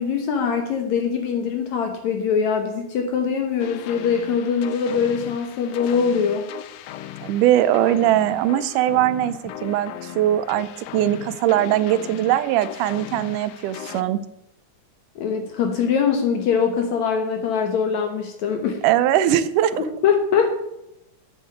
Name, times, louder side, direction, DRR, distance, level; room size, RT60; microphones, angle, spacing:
voice 1, 0.0-6.5 15.2-18.8 19.7-20.5, left 6 dB, 65° left, 4 dB, 2.4 m, -22 dB
sound 1, 3.6-14.0, left 11 dB, 85° left, 1.4 m, -37 dB
voice 2, 7.2-14.2 18.8-19.8, right 12 dB, 85° right, 15 dB, 2.2 m, -21 dB
8.9 x 7.2 x 8.4 m, 0.86 s
omnidirectional pair, 3.6 m